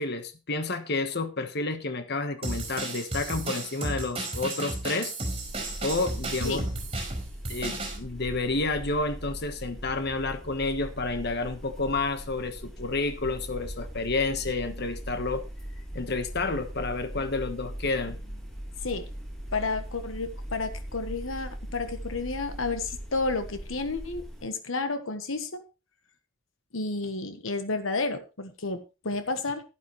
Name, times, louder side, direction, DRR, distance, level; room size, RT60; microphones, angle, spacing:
voice 1, 0.0-5.1 5.8-6.6 7.5-15.4 15.9-18.4, left 3 dB, 55° left, 1.4 m, -30 dB
sound 1, 2.4-8.0, right 2 dB, 25° right, 4.9 m, -33 dB
sound 2, 5.4-24.4, equal, ahead, 2.9 m, -40 dB
voice 2, 19.5-25.6 26.7-29.6, left 3 dB, 75° left, 1.4 m, -31 dB
12.0 x 11.5 x 3.2 m
head